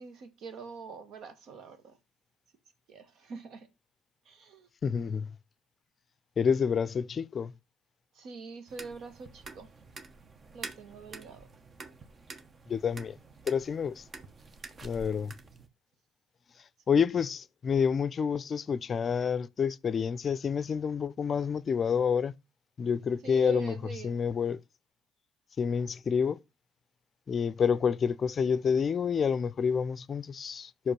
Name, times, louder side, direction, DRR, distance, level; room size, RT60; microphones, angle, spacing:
voice 1, 0.0-2.0 2.9-3.7 4.2-4.7 8.1-9.7 10.5-11.5 23.2-24.1, right 5 dB, 60° right, 1.5 m, -44 dB
voice 2, 4.8-5.3 6.4-7.5 12.7-13.1 13.5-14.0 14.8-15.3 16.9-22.3 22.8-23.7 24.0-24.6 25.6-26.4 27.3-30.9, left 6 dB, 45° left, 0.5 m, -28 dB
sound 1, 8.7-15.7, right 3 dB, 40° right, 1.2 m, -48 dB
5.8 x 5.1 x 6.0 m
hypercardioid pair, 55°, 0 cm